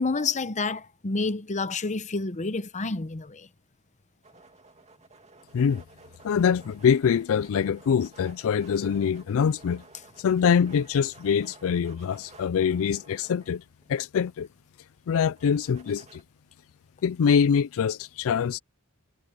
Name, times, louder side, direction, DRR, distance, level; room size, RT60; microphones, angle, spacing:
voice 1, 0.0-3.5, left 3 dB, 30° left, 0.9 m, -29 dB
sound 1, 4.2-14.1 15.4-16.2, right 3 dB, 30° right, 2.5 m, -54 dB
voice 2, 6.2-9.8 10.2-14.5 15.1-16.2 17.0-18.6, left 7 dB, 65° left, 0.4 m, -24 dB
head